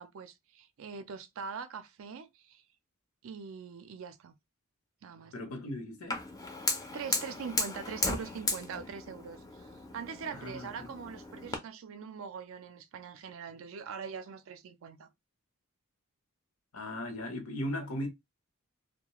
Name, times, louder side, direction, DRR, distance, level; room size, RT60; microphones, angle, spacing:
voice 1, 0.0-2.6 3.2-4.3 5.0-5.3 6.9-15.1, right 6 dB, 65° right, 0.4 m, -43 dB
voice 2, 5.3-6.2 10.3-10.9 16.7-18.1, left 1 dB, 80° left, 0.8 m, -37 dB
Fire, 6.1-11.6, left 2 dB, 15° left, 0.4 m, -36 dB
2.3 x 2.1 x 2.9 m
head